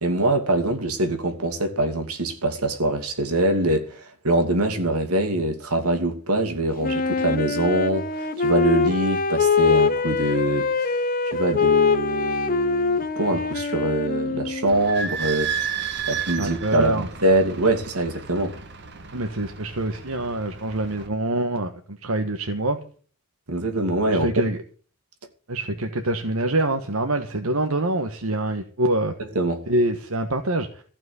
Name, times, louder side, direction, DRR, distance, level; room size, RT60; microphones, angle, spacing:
voice 1, 0.0-11.0 11.2-18.6 23.5-24.3 29.2-29.6, right 1 dB, 90° right, 2.6 m, -24 dB
Wind instrument woodwind instrument, 6.8-14.8, left 4 dB, 40° left, 1.0 m, -23 dB
Idling / Squeak, 14.7-21.1, right 7 dB, 50° right, 1.4 m, -33 dB
voice 2, 16.4-17.1 19.1-22.9 24.1-24.6 25.5-29.1 29.7-30.8, right 1 dB, 75° right, 1.4 m, -25 dB
15.0 x 6.1 x 9.5 m
head